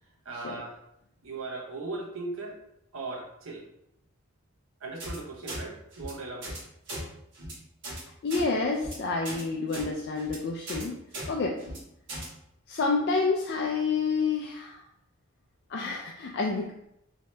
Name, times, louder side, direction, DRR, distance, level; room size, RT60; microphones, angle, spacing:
voice 1, 0.2-0.8 1.2-2.6 2.9-3.7 4.8-6.6, right 3 dB, 80° right, 1 dB, 0.8 m, -38 dB
sound 1, 5.0-5.2 5.5-5.6 5.9-6.1 6.4-6.6 6.9-7.0 7.3-7.5 7.8-8.0 8.3-8.4 8.8-8.9 9.2-9.4 9.7-9.9 10.2-10.4 10.7-10.8 11.1-11.3 11.6-11.8 12.1-12.3, right 1 dB, 60° right, 1.3 m, -37 dB
voice 2, 8.2-11.0 11.3-11.6 12.7-14.8 15.7-16.7, left 4 dB, 50° left, 0 dB, 0.3 m, -29 dB
3.1 x 2.7 x 3.2 m, 0.79 s
head